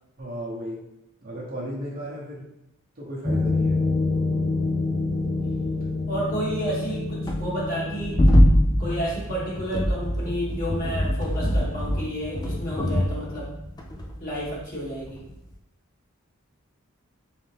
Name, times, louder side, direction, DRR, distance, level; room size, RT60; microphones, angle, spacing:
voice 1, 0.2-0.8 1.2-2.5 3.0-3.8, equal, 40° right, -4 dB, 0.9 m, -34 dB
sound 1, 3.3-14.8 15.1-15.3, left 1 dB, 20° left, 0.4 m, -24 dB
voice 2, 6.1-8.2 8.8-13.5 14.2-15.2, right 1 dB, 40° left, -6 dB, 1.5 m, -31 dB
3.5 x 3.3 x 3.3 m, 0.87 s
head